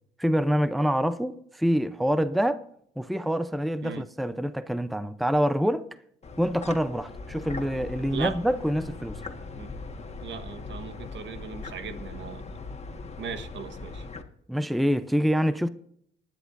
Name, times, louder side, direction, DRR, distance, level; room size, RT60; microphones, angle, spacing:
voice 1, 0.2-2.6 3.0-5.9 6.4-9.2 14.5-15.7, equal, ahead, 0.6 m, -26 dB
sound 1, 6.2-14.2, left 3 dB, 35° left, 1.6 m, -40 dB
voice 2, 10.2-12.6 13.2-14.0, right 7 dB, 70° right, 1.3 m, -38 dB
19.5 x 10.5 x 2.6 m
cardioid pair, 90°, 20 cm